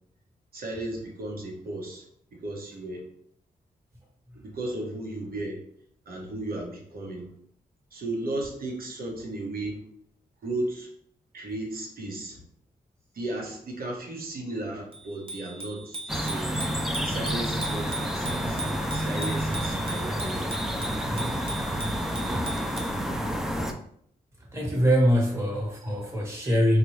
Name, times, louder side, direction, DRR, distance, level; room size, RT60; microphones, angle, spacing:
voice 1, 0.5-2.1 2.3-3.1 4.3-5.6 6.0-7.3 7.9-9.8 10.4-10.9 11.3-12.4 13.1-16.5 17.0-18.6 18.9-20.7 25.3-25.4, right 2 dB, 75° right, -1 dB, 1.1 m, -35 dB
Bicycle bell, 14.9-23.0, right 2 dB, 35° right, 0.7 m, -39 dB
sound 1, 16.1-23.7, equal, ahead, 0.4 m, -29 dB
voice 2, 21.0-21.9 22.3-22.6 24.4-26.8, equal, 15° right, -2 dB, 1.3 m, -25 dB
4.1 x 2.3 x 3.1 m, 0.65 s
cardioid pair, 65°, 16 cm